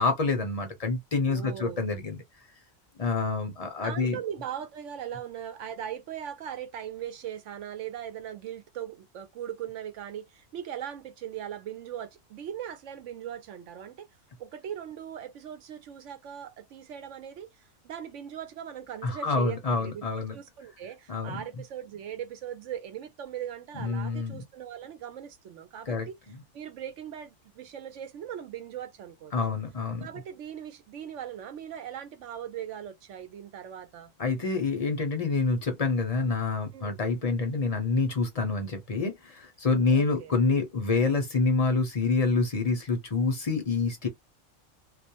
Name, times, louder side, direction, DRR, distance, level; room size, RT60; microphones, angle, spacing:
voice 1, 0.0-2.2 3.0-4.2 19.0-20.3 21.1-21.4 23.7-24.4 25.9-26.1 29.3-30.1 34.2-44.1, left 4 dB, 40° left, 0.6 m, -27 dB
voice 2, 1.3-1.8 3.8-14.1 14.4-26.2 26.5-29.3 30.0-34.1 36.7-37.0 39.8-40.3, right 9 dB, 75° right, 0.9 m, -39 dB
2.4 x 2.1 x 2.8 m
omnidirectional pair, 1.3 m